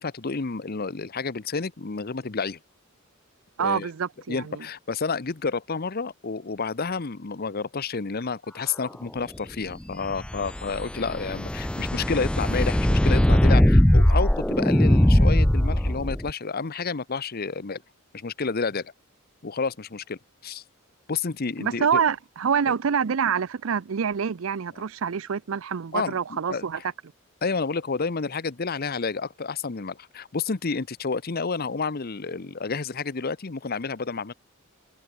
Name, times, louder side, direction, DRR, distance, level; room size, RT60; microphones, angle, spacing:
voice 1, 0.0-2.6 3.6-3.9 4.3-17.8 18.1-18.9 19.4-20.6 21.1-22.0 25.9-26.6 27.4-34.3, left 4 dB, 45° left, 0.8 m, -30 dB
voice 2, 3.6-4.6 21.6-26.8, right 7 dB, 75° right, 0.5 m, -26 dB
sound 1, 10.0-16.3, left 1 dB, 5° left, 0.4 m, -20 dB
head